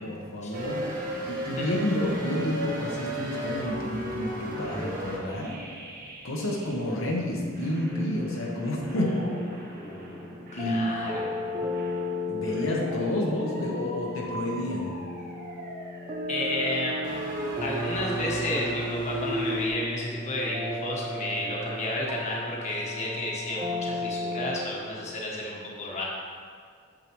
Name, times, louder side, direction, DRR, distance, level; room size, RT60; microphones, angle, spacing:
voice 1, 0.0-0.8 1.3-5.5 6.2-9.3 10.6-11.0 12.3-14.9, left 1 dB, 70° left, -3 dB, 1.1 m, -30 dB
sound 1, 0.5-7.1 7.5-19.7, right 1 dB, 45° right, 1.4 m, -37 dB
sound 2, 7.9-24.6, left 1 dB, 25° right, 0.8 m, -35 dB
voice 2, 8.9-9.4 9.7-11.7 16.3-17.1 17.6-26.1, left 1 dB, 35° left, -4 dB, 1.3 m, -32 dB
8.7 x 7.4 x 3.1 m, 2.1 s
head